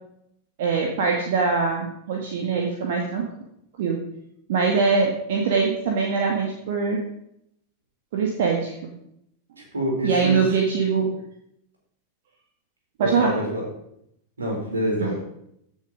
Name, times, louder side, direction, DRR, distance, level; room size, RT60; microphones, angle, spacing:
voice 1, 0.6-3.2 3.8-4.0 4.5-7.0 8.1-8.7 10.0-11.1 13.0-13.3 15.0-15.1, right 5 dB, 55° right, 1 dB, 1.8 m, -23 dB
voice 2, 9.7-10.4 13.0-13.6 14.4-15.2, equal, 75° right, -1 dB, 4.6 m, -26 dB
15.0 x 6.9 x 5.1 m, 0.75 s
figure-of-eight pair, 90°, 0 cm